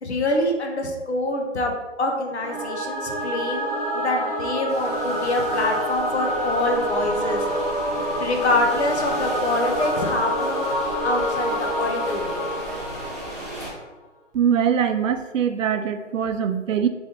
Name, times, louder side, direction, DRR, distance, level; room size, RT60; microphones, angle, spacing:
voice 1, 0.0-1.7 2.0-7.4 8.2-12.5, left 1 dB, 60° left, 3 dB, 0.8 m, -25 dB
Singing / Musical instrument, 2.4-13.7, equal, 30° left, 0.4 m, -27 dB
sound 1, 4.7-13.7, right 1 dB, 5° left, 1.0 m, -36 dB
voice 2, 14.3-16.9, right 8 dB, 90° right, 9 dB, 0.5 m, -22 dB
3.3 x 2.6 x 3.6 m, 1.2 s
hypercardioid pair, 170°, 37 cm